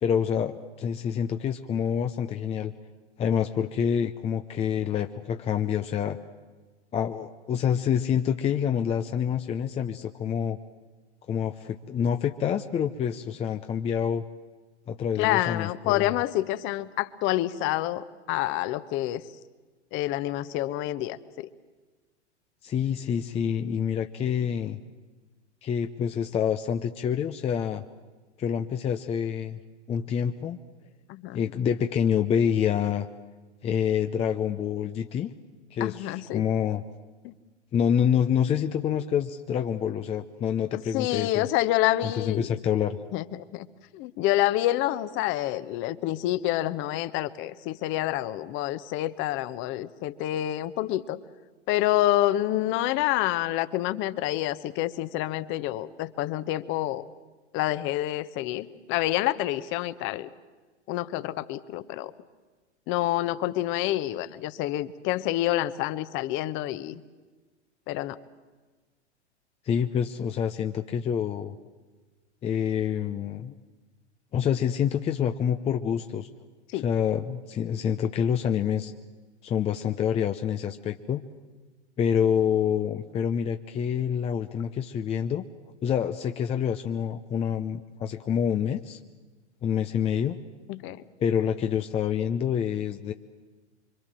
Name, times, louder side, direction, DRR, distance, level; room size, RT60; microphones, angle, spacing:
voice 1, 0.0-2.7 3.2-6.2 6.9-10.6 11.3-14.2 14.9-16.1 22.6-24.8 25.6-27.8 28.4-29.6 29.9-30.6 31.3-33.1 33.6-35.3 35.7-36.8 37.7-41.5 42.0-43.0 69.6-71.6 72.4-73.5 74.3-76.3 76.7-78.9 79.4-81.2 82.0-85.5 85.8-89.0 89.6-90.4 91.2-93.1, left 8 dB, 15° left, 6 dB, 0.7 m, -27 dB
voice 2, 15.2-19.2 19.9-21.5 31.1-31.4 35.8-36.4 37.2-37.3 40.7-42.5 43.1-43.2 43.5-43.7 43.9-51.2 51.7-57.1 57.5-60.3 60.9-62.1 62.9-67.0 67.9-68.2 76.7-76.9 90.7-91.0, left 15 dB, 35° left, 14 dB, 1.1 m, -28 dB
26.0 x 24.0 x 7.5 m, 1.3 s
hypercardioid pair, 110°, 35 cm